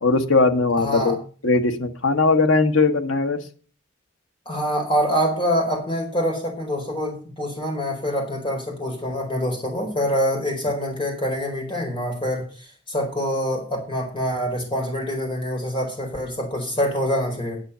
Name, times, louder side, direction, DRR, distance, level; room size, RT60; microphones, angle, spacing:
voice 1, 0.0-1.2 1.4-3.4, left 3 dB, 80° left, 6 dB, 1.5 m, -19 dB
voice 2, 0.8-1.2 4.5-12.5 12.9-17.6, equal, 25° left, 2 dB, 4.3 m, -25 dB
10.0 x 8.1 x 6.9 m, 0.40 s
head